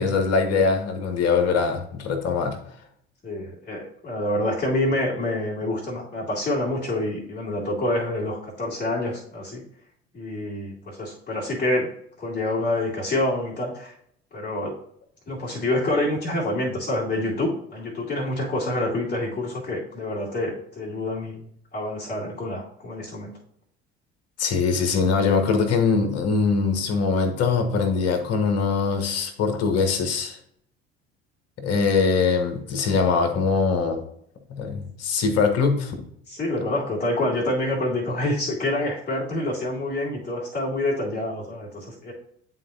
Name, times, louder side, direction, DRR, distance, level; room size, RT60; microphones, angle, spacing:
voice 1, 0.0-2.6 24.4-30.4 31.6-34.0 34.5-35.9, left 5 dB, 50° left, 6 dB, 1.4 m, -22 dB
voice 2, 3.2-9.6 10.1-11.9 12.2-13.9 14.3-14.7 15.3-21.4 21.7-23.3 36.3-42.1, left 1 dB, 25° left, -8 dB, 2.5 m, -27 dB
10.5 x 3.9 x 2.7 m, 0.68 s
figure-of-eight pair, 60°, 33 cm